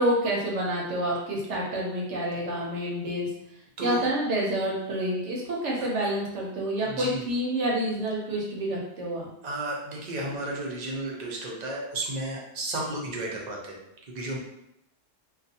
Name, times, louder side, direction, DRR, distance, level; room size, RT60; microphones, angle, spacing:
voice 1, 0.0-3.3 3.8-9.3, right 1 dB, 75° right, -3 dB, 0.9 m, -28 dB
voice 2, 6.8-7.2 9.4-13.8 14.1-14.4, right 2 dB, 50° right, -3 dB, 0.5 m, -33 dB
2.3 x 2.2 x 2.7 m, 0.82 s
omnidirectional pair, 1.3 m